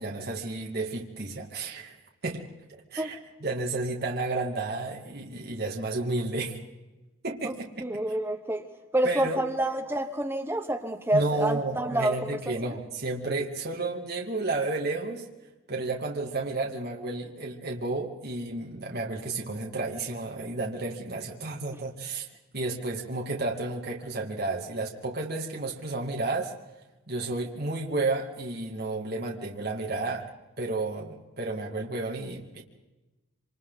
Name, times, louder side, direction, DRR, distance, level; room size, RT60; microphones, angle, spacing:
voice 1, 0.0-2.0 2.2-2.4 2.9-6.6 7.2-7.9 9.0-9.4 11.1-15.3 15.7-22.2 22.5-26.5 27.1-30.2 30.6-32.6, right 2 dB, 45° right, 0 dB, 2.3 m, -32 dB
voice 2, 7.8-8.6 8.9-12.3, right 1 dB, 10° right, 6 dB, 1.0 m, -28 dB
27.0 x 26.0 x 4.1 m, 1.1 s
head